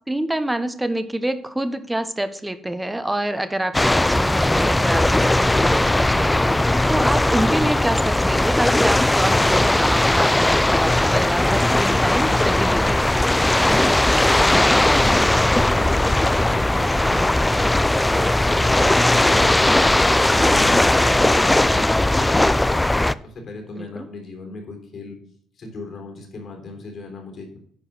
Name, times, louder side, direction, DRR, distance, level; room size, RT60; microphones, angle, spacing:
voice 1, 0.1-13.2 23.8-24.1, right 1 dB, 10° right, 11 dB, 1.0 m, -27 dB
sound 1, 3.7-23.1, left 1 dB, 10° left, 0.3 m, -18 dB
voice 2, 14.5-17.8 18.1-22.8 23.2-25.2 25.5-27.6, left 2 dB, 55° left, 2 dB, 3.4 m, -38 dB
10.0 x 4.7 x 6.0 m, 0.62 s
cardioid pair, 90°, 0 cm